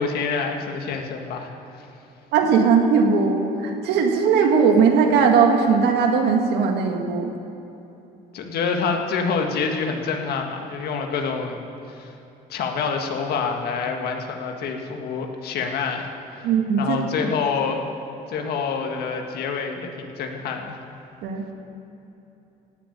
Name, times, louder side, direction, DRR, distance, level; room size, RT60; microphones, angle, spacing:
voice 1, 0.0-1.5 1.7-1.9 8.3-11.6 12.0-12.1 12.5-16.1 16.3-16.5 16.8-17.8 18.3-20.8, left 5 dB, 70° left, 3 dB, 1.8 m, -27 dB
voice 2, 2.3-7.3 16.4-17.0 21.2-21.5, right 5 dB, 85° right, 3 dB, 1.9 m, -19 dB
17.0 x 7.9 x 8.8 m, 2.9 s
cardioid pair, 110°, 17 cm